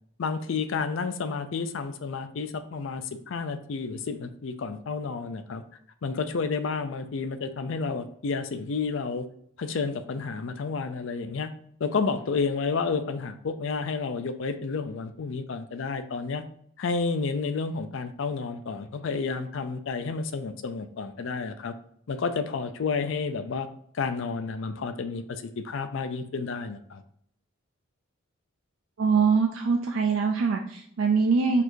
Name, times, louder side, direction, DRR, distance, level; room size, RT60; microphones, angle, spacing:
voice 1, 0.2-5.6 6.0-9.2 9.6-11.5 11.8-16.4 16.8-21.7 22.1-23.7 23.9-27.0, left 4 dB, 65° left, 9 dB, 0.4 m, -30 dB
voice 2, 29.0-31.6, right 5 dB, 70° right, 2 dB, 0.4 m, -23 dB
4.2 x 2.6 x 4.5 m, 0.67 s
head